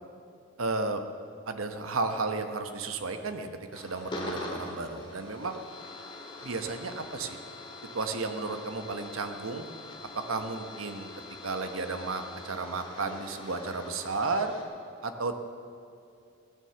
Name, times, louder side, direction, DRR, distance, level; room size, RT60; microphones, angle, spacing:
voice 1, 0.6-1.0 1.5-5.6 6.4-7.4 7.9-9.7 10.3-11.1 11.4-14.5 15.0-15.4, right 3 dB, 90° right, 7 dB, 1.1 m, -33 dB
sound 1, 3.7-14.6, left 2 dB, 25° left, 1.9 m, -43 dB
16.5 x 9.5 x 7.1 m, 2.5 s
head